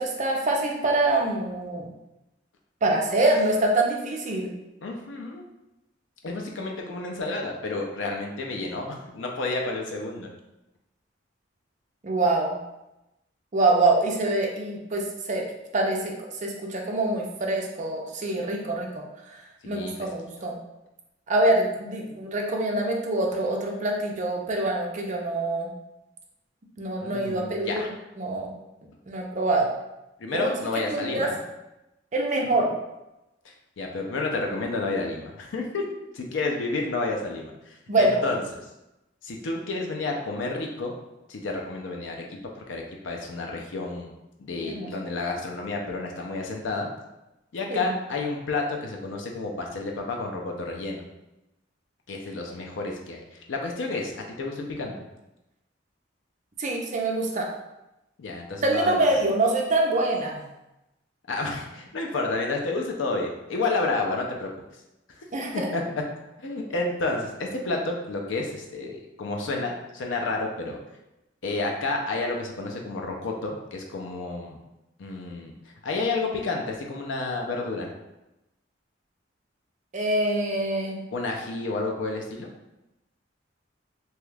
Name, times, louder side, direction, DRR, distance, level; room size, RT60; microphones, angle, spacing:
voice 1, 0.0-1.9 2.8-4.5 12.0-12.6 13.5-15.4 15.7-19.0 19.7-20.6 21.3-25.7 26.8-27.9 28.2-28.5 29.1-29.7 30.3-30.5 30.9-31.3 32.1-32.7 37.9-38.2 44.6-44.9 47.7-47.9 56.6-57.5 58.6-60.4 65.3-65.7 79.9-81.0, right 2 dB, 40° right, 0 dB, 0.5 m, -25 dB
voice 2, 4.8-5.4 6.2-10.3 19.6-20.1 27.0-27.9 30.2-31.4 33.4-35.8 36.1-38.4 39.2-40.9 41.3-42.2 42.7-44.1 44.4-46.9 47.5-51.0 52.1-55.0 58.2-59.2 61.3-64.5 65.2-65.3 65.5-65.8 66.4-70.8 71.4-74.6 75.0-75.5 75.8-77.9 81.1-82.5, left 3 dB, 75° left, 1 dB, 0.5 m, -30 dB
2.9 x 2.3 x 3.2 m, 0.95 s
head